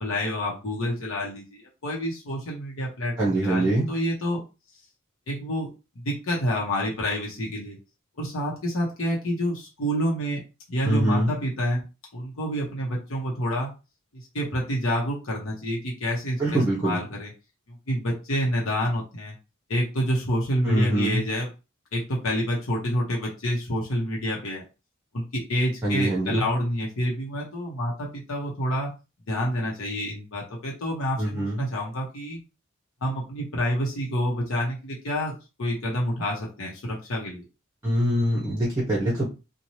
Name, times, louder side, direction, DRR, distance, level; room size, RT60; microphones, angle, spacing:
voice 1, 0.0-4.4 5.3-5.7 6.0-7.8 8.2-10.4 10.7-11.8 12.1-13.7 14.1-17.3 17.7-19.3 19.7-21.5 21.9-24.6 25.1-28.9 29.3-32.4 33.0-37.4, equal, 75° left, -3 dB, 0.9 m, -28 dB
voice 2, 3.2-3.8 10.8-11.3 16.4-17.0 20.6-21.2 25.8-26.5 31.2-31.7 37.8-39.2, right 1 dB, 15° right, -5 dB, 0.8 m, -24 dB
2.7 x 2.2 x 3.1 m, 0.29 s
head